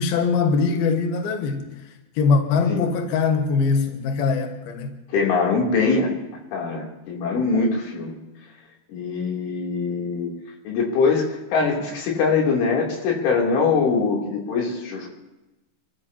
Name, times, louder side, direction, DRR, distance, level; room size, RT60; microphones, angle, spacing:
voice 1, 0.0-5.0, left 4 dB, 65° left, 4 dB, 2.9 m, -22 dB
voice 2, 5.1-6.1 6.5-8.2 8.9-10.3 10.7-15.1, left 4 dB, 80° left, -1 dB, 5.5 m, -22 dB
29.0 x 14.5 x 2.8 m, 1.0 s
omnidirectional pair, 5.5 m